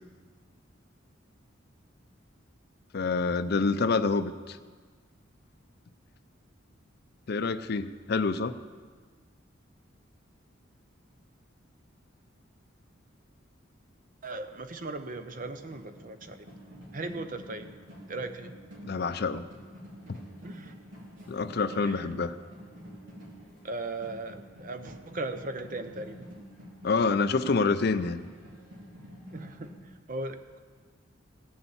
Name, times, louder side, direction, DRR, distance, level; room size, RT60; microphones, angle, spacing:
voice 1, 2.9-4.6 7.3-8.5 18.8-19.4 21.3-22.3 26.8-28.2, left 4 dB, 55° left, 12 dB, 0.5 m, -27 dB
voice 2, 14.2-16.5 16.9-17.7 18.1-18.5 20.4-20.7 21.8-22.1 23.6-26.2 29.3-29.7 30.1-30.6, right 2 dB, 40° right, 8 dB, 0.8 m, -37 dB
sound 1, 15.3-29.7, equal, 75° right, 3.2 m, -48 dB
17.0 x 6.9 x 7.1 m, 1.5 s
head